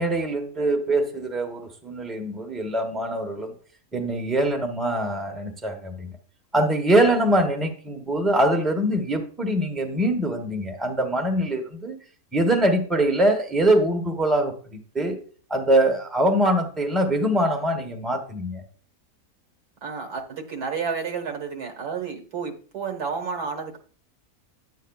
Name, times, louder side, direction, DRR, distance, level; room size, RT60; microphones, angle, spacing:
voice 1, 0.0-3.5 3.9-6.1 6.5-12.0 12.3-15.2 15.5-18.6, right 1 dB, ahead, 3 dB, 0.9 m, -23 dB
voice 2, 19.8-23.8, right 5 dB, 90° right, 4 dB, 1.9 m, -31 dB
10.5 x 8.2 x 2.3 m, 0.41 s
omnidirectional pair, 1.6 m